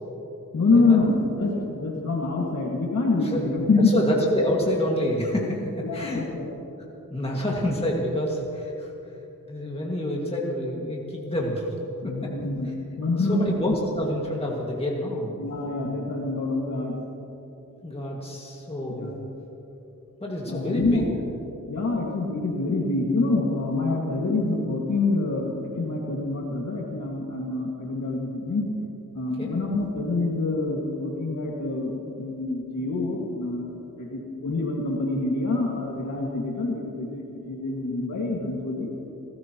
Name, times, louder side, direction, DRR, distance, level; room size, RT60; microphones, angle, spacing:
voice 1, 0.5-3.9 5.8-6.5 12.0-12.7 13.0-13.4 15.4-17.0 18.9-19.2 20.5-21.1 21.7-28.7 29.1-31.9 32.2-38.9, left 3 dB, 60° left, -3 dB, 2.1 m, -26 dB
voice 2, 3.8-6.2 7.1-8.9 9.5-11.8 12.0-12.3 12.6-12.7 13.2-15.4 17.8-19.1 20.2-21.0 29.4-29.6, left 1 dB, 20° left, -3 dB, 2.0 m, -27 dB
30.0 x 14.0 x 3.0 m, 2.9 s
wide cardioid pair, 90°, 32 cm